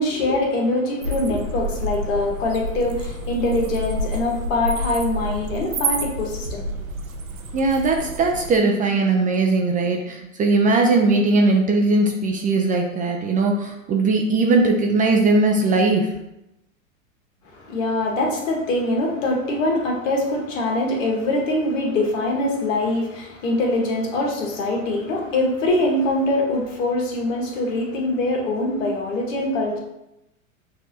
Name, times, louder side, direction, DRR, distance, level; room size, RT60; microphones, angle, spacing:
voice 1, 0.0-6.7 17.5-29.8, left 2 dB, 65° left, 0 dB, 1.4 m, -23 dB
sound 1, 1.0-8.6, right 1 dB, 90° right, 0.7 m, -29 dB
voice 2, 7.5-16.1, right 3 dB, 20° right, 1 dB, 0.4 m, -19 dB
6.2 x 2.6 x 2.7 m, 0.88 s
hypercardioid pair, 90°, 41 cm